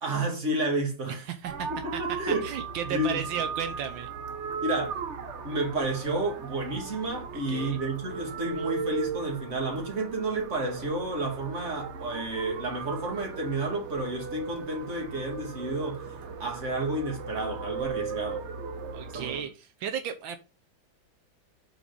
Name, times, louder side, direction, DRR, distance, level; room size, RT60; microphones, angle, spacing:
voice 1, 0.0-1.3 1.7-2.5 2.9-3.2 4.6-5.0 5.4-16.1 16.4-18.5 19.1-19.5, right 2 dB, 40° right, 2.1 m, -31 dB
voice 2, 1.1-2.0 2.3-4.1 7.3-7.8 18.9-20.4, right 8 dB, 80° right, 1.5 m, -34 dB
sound 1, 1.4-19.4, right 5 dB, 65° right, 0.7 m, -37 dB
6.1 x 4.0 x 5.2 m
omnidirectional pair, 2.2 m